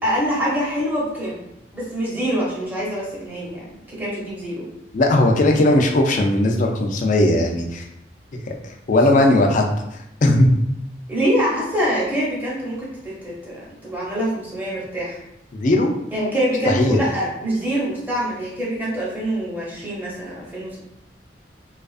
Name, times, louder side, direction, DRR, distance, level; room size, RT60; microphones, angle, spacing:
voice 1, 0.0-1.5 1.7-4.7 11.1-15.2 16.1-20.8, equal, 10° right, -7 dB, 0.8 m, -25 dB
voice 2, 4.9-7.8 8.6-9.6 10.2-10.5 15.5-15.9 16.7-17.0, left 1 dB, 45° left, 2 dB, 0.4 m, -17 dB
2.4 x 2.4 x 2.4 m, 0.79 s
head